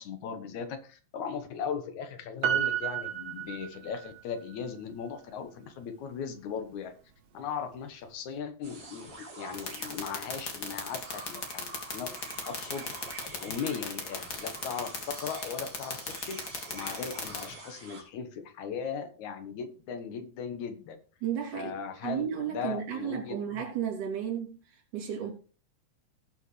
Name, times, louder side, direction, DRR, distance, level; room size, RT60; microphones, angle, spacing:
voice 1, 0.0-6.9 7.3-11.7 11.9-12.1 12.4-16.0 16.3-16.4 16.7-21.0 21.5-23.6, left 6 dB, 75° left, 2.5 m, -38 dB
Piano, 2.4-4.2 4.5-4.6, right 10 dB, 65° right, 2.1 m, -31 dB
sound 1, 8.6-18.0, right 3 dB, 45° right, 4.3 m, -46 dB
sound 2, 9.5-17.4, left 6 dB, 35° left, 2.2 m, -35 dB
voice 2, 21.2-21.8 22.0-25.3, right 9 dB, 85° right, 4.4 m, -33 dB
18.5 x 6.3 x 3.2 m
omnidirectional pair, 3.4 m